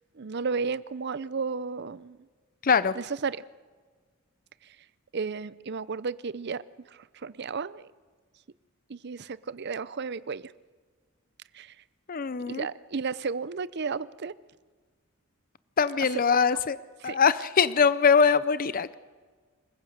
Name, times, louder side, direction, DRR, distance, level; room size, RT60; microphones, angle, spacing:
voice 1, 0.1-2.2 2.9-3.4 4.6-4.8 5.1-7.9 8.9-10.5 11.5-11.8 12.5-14.3 16.1-16.2 17.0-17.2, right 5 dB, 55° right, 18 dB, 0.6 m, -33 dB
voice 2, 2.6-2.9 12.1-12.7 15.8-16.8 17.0-18.9, left 6 dB, 45° left, 16 dB, 0.6 m, -22 dB
27.0 x 15.0 x 6.6 m, 1.5 s
head